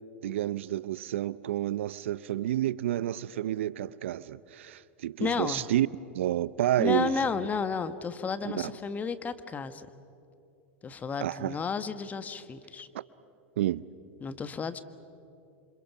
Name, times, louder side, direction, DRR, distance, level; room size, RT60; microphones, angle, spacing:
voice 1, 0.2-5.9 6.1-7.3 8.5-8.7 11.2-11.6 13.6-13.8, right 13 dB, 70° right, 0.6 m, -30 dB
voice 2, 5.2-5.7 6.8-9.9 10.8-12.9 14.2-14.8, left 5 dB, 25° left, 1.3 m, -32 dB
28.0 x 26.0 x 6.1 m
hypercardioid pair, 95°, 7 cm